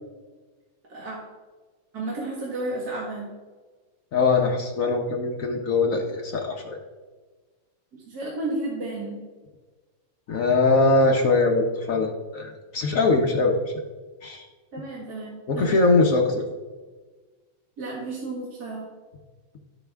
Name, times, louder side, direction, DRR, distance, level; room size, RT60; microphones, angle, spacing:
voice 1, 1.9-3.3 7.9-9.2 14.7-15.8 17.8-18.9, right 2 dB, 45° right, -4 dB, 2.2 m, -32 dB
voice 2, 4.1-6.8 10.3-13.7 14.2-14.5 15.5-16.4, left 3 dB, 65° left, 2 dB, 0.8 m, -22 dB
11.5 x 7.8 x 3.5 m, 1.3 s
omnidirectional pair, 2.4 m